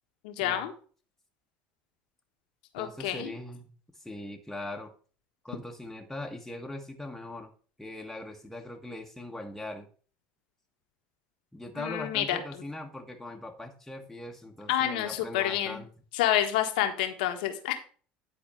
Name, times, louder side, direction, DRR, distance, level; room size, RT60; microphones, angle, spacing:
voice 1, 0.2-0.7 2.7-3.3 11.7-12.4 14.7-15.8 16.1-17.8, left 12 dB, 80° left, 6 dB, 1.5 m, -28 dB
voice 2, 2.8-3.7 4.0-4.9 5.4-7.5 7.8-9.9 11.5-15.9, left 1 dB, 5° left, 1 dB, 1.5 m, -40 dB
10.5 x 4.3 x 5.6 m, 0.41 s
supercardioid pair, 90°, 5 cm